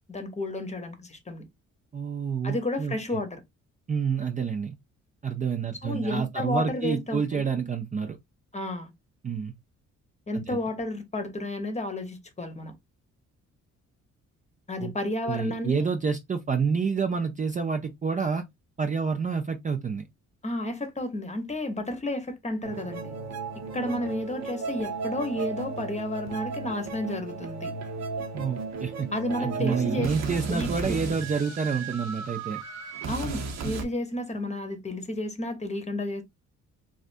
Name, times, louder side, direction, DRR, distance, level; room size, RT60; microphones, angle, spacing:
voice 1, 0.1-1.4 2.4-3.4 5.8-7.4 8.5-8.9 10.3-12.7 14.7-15.9 20.4-23.1 23.7-27.7 29.1-30.1 30.5-31.0 33.1-36.2, left 1 dB, 20° left, 0.9 m, -31 dB
voice 2, 1.9-2.9 3.9-4.7 5.2-8.2 9.2-9.5 10.3-10.6 14.8-14.9 15.3-18.5 18.8-20.0 28.3-29.1 29.4-32.6, right 5 dB, 25° right, 0.4 m, -28 dB
sound 1, 22.6-33.9, right 4 dB, 65° right, 0.8 m, -34 dB
3.3 x 2.5 x 2.5 m
cardioid pair, 90°, 30 cm